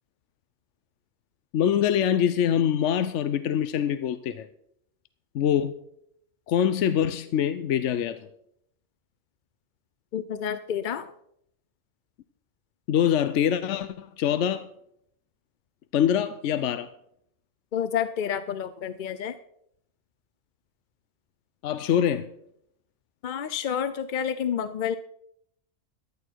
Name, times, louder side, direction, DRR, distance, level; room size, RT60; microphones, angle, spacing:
voice 1, 1.5-4.5 5.3-5.7 6.5-8.2 12.9-14.7 15.9-16.9 21.6-22.3, left 9 dB, 70° left, 12 dB, 0.9 m, -24 dB
voice 2, 10.1-11.1 17.7-19.4 23.2-25.0, left 8 dB, 55° left, 13 dB, 0.6 m, -29 dB
15.0 x 11.5 x 4.6 m, 0.73 s
omnidirectional pair, 1.3 m